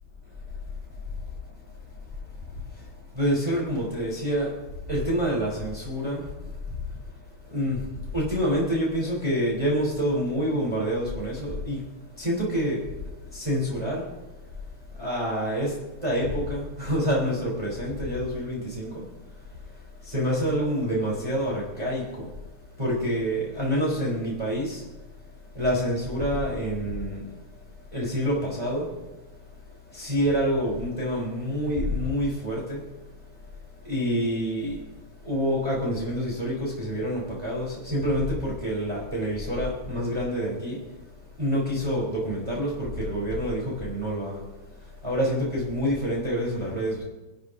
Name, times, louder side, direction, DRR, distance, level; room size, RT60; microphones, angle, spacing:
voice 1, 3.1-4.5 4.9-6.3 6.7-6.8 7.5-11.8 12.2-12.9 13.3-14.0 15.0-19.1 20.0-22.3 22.8-24.8 25.5-27.3 27.9-28.9 29.9-32.8 33.8-34.8 35.2-40.8 41.4-44.4 44.8-47.0, equal, 15° right, -5 dB, 3.7 m, -27 dB
26.5 x 12.0 x 2.7 m, 1.1 s
omnidirectional pair, 2.1 m